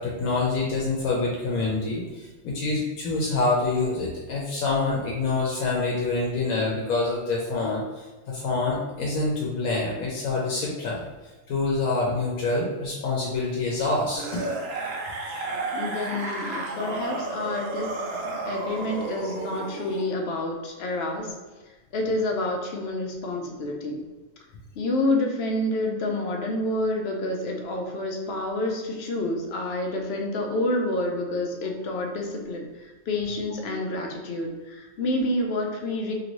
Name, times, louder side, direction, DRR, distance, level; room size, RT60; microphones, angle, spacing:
voice 1, 0.0-11.0 11.5-14.4, left 3 dB, 85° left, -3 dB, 1.1 m, -26 dB
sound 1, 14.1-20.1 21.2-21.3, right 2 dB, 60° right, 0.7 m, -32 dB
voice 2, 15.7-18.1 18.4-21.3 21.9-24.0 24.8-36.1, left 1 dB, 60° left, 1 dB, 0.7 m, -28 dB
2.9 x 2.6 x 3.0 m, 1.2 s
omnidirectional pair, 1.4 m